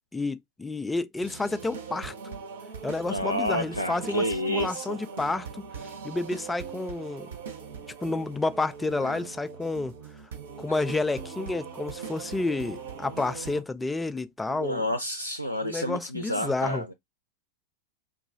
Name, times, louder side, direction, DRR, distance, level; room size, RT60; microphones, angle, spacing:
voice 1, 0.1-2.1 2.8-5.6 6.0-7.3 8.0-9.9 10.6-14.8 15.6-16.8, left 3 dB, 10° left, 0.3 m, -30 dB
sound 1, 1.2-13.6, right 6 dB, 60° right, 0.7 m, -41 dB
voice 2, 3.1-5.0 9.0-9.2 14.5-16.9, left 1 dB, 90° left, 0.4 m, -30 dB
3.7 x 2.3 x 2.6 m
figure-of-eight pair, 90°, 0 cm